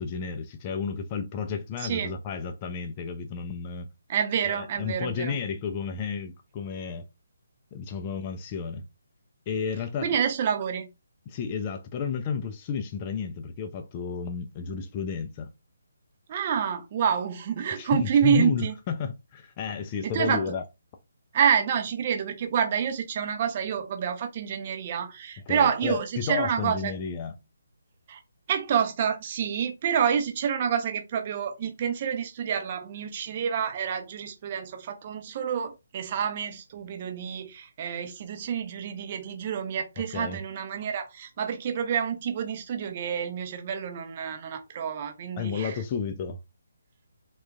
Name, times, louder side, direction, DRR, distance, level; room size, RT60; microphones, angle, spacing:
voice 1, 0.0-3.9 4.5-7.0 7.7-8.9 9.5-10.2 11.3-15.5 17.8-20.6 25.5-27.4 40.0-40.4 45.4-46.4, left 6 dB, 25° left, 0.3 m, -32 dB
voice 2, 4.1-5.4 10.0-10.9 16.3-18.7 20.0-20.4 21.3-26.9 28.1-28.2 28.5-45.7, right 8 dB, 30° right, 0.6 m, -28 dB
3.6 x 2.2 x 2.3 m
figure-of-eight pair, 145°, 0 cm